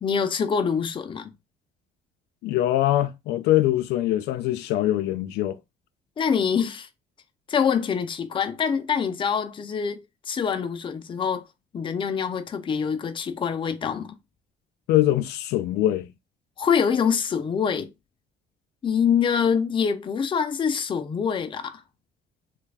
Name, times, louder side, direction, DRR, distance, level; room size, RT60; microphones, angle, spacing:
voice 1, 0.0-1.3 6.2-6.9 7.5-11.4 11.7-14.2 16.6-17.9 18.8-21.8, left 7 dB, 30° left, 0.5 m, -25 dB
voice 2, 2.4-5.6 14.9-16.1, left 14 dB, 80° left, 0.4 m, -23 dB
3.2 x 2.4 x 3.3 m
cardioid pair, 110°, 17 cm